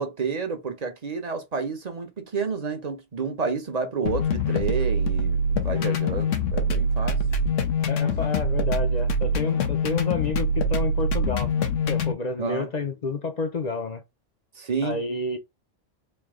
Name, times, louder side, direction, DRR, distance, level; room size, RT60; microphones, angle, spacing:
voice 1, 0.0-7.2 12.4-12.7 14.6-15.0, right 5 dB, 40° right, 0.8 m, -30 dB
sound 1, 4.1-12.1, left 1 dB, 85° left, 1.0 m, -24 dB
voice 2, 7.9-11.5 11.9-14.0 14.8-15.4, left 3 dB, 45° left, 0.6 m, -29 dB
3.4 x 2.7 x 3.6 m
omnidirectional pair, 1.3 m